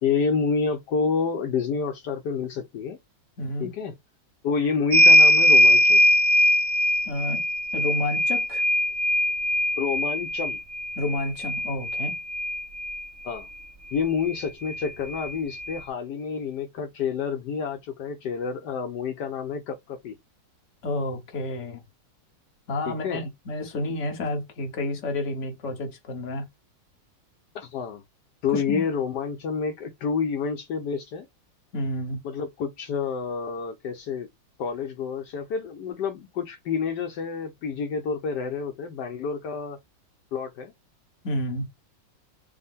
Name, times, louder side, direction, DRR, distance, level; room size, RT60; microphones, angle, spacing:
voice 1, 0.0-3.0 3.6-3.9 4.4-6.0 9.8-10.6 13.2-13.5 13.9-20.2 22.9-23.2 27.5-28.0 28.4-31.3 32.2-34.3 34.6-39.8 40.3-40.7, left 5 dB, 70° left, 1.3 m, -28 dB
voice 2, 3.4-3.7 7.0-7.5 7.7-8.6 11.0-12.2 20.8-21.8 22.7-26.5 28.5-28.8 31.7-32.2 41.2-41.7, left 2 dB, 45° left, 1.3 m, -30 dB
sound 1, 4.9-13.0 14.3-14.4 14.7-15.8, equal, 55° right, 0.6 m, -21 dB
5.4 x 2.1 x 3.6 m
omnidirectional pair, 2.0 m